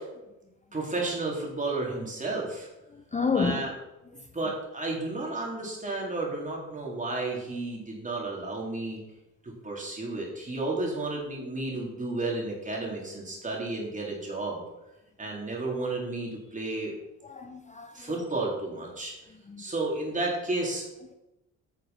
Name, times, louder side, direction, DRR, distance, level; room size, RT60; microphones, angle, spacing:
voice 1, 0.7-2.7 3.3-3.7 4.3-9.0 9.4-14.6 15.2-16.9 17.9-19.1 19.6-20.8, right 2 dB, 25° right, -2 dB, 3.7 m, -32 dB
voice 2, 2.9-3.7 17.2-18.2 19.5-19.6, left 5 dB, 25° left, 5 dB, 0.8 m, -30 dB
9.3 x 6.5 x 5.8 m, 0.97 s
cardioid pair, 90°, 30 cm